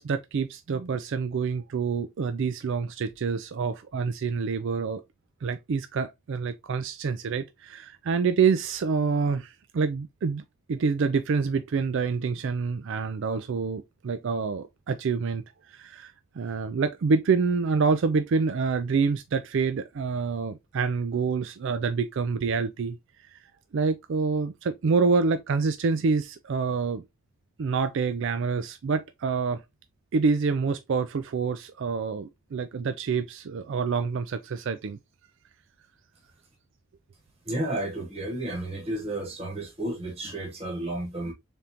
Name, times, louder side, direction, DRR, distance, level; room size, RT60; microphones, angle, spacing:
voice 1, 0.0-5.0 5.4-10.4 10.7-15.4 15.7-23.0 23.3-23.4 23.7-27.0 27.6-29.6 30.1-35.0, right 5 dB, 55° right, 0.4 m, -27 dB
voice 2, 37.5-41.3, right 1 dB, 30° right, 1.1 m, -32 dB
3.8 x 3.5 x 2.8 m
head